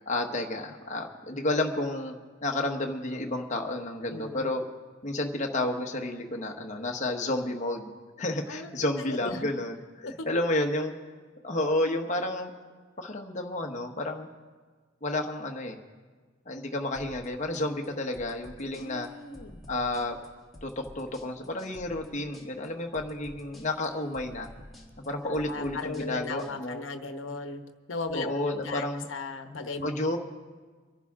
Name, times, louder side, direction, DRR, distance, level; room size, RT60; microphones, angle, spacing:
voice 1, 0.0-2.1 2.4-4.6 5.0-7.9 8.2-10.9 11.4-12.5 13.0-14.3 15.0-15.8 16.5-19.1 19.7-20.2 20.6-24.5 25.0-26.8 28.1-29.1 29.8-30.2, left 1 dB, 40° left, 2 dB, 1.2 m, -31 dB
voice 2, 4.1-4.4 8.5-9.5 10.0-10.3 18.7-19.6 25.2-27.6 27.9-30.0, left 3 dB, 85° left, 7 dB, 1.0 m, -37 dB
sound 1, 16.9-26.5, left 1 dB, ahead, 1.8 m, -50 dB
25.0 x 11.0 x 3.7 m, 1.4 s
head